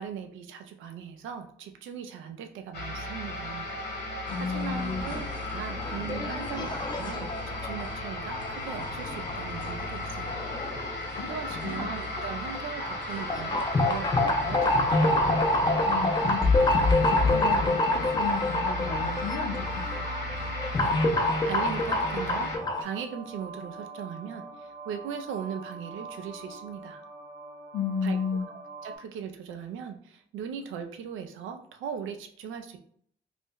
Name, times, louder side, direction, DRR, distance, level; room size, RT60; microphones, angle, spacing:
voice 1, 0.0-3.7 4.4-10.4 11.2-15.2 20.8-22.5 22.8-27.0 28.0-28.2 28.8-32.8, right 7 dB, 80° right, 7 dB, 0.5 m, -39 dB
sound 1, 2.7-22.6, left 2 dB, 55° left, 1.1 m, -36 dB
voice 2, 4.3-5.1 11.2-11.9 15.8-17.0 17.3-19.8 27.7-28.5, left 6 dB, 80° left, 3 dB, 0.7 m, -33 dB
sound 2, 4.3-22.8, left 2 dB, 20° left, 0.5 m, -27 dB
sound 3, 11.6-29.0, right 4 dB, 35° right, 1.0 m, -44 dB
2.6 x 2.1 x 3.6 m, 0.62 s
cardioid pair, 90°, 20 cm